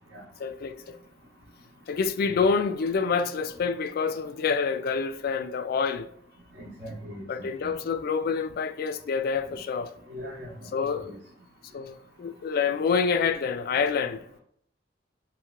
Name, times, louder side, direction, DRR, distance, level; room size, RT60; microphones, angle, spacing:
voice 1, 0.4-1.0 1.9-6.1 7.3-9.9 10.7-11.1 11.7-14.2, left 5 dB, 55° left, 0.3 m, -27 dB
voice 2, 6.6-7.7 10.1-10.5 11.0-11.2, equal, 70° right, 0.7 m, -40 dB
3.1 x 2.9 x 2.2 m
head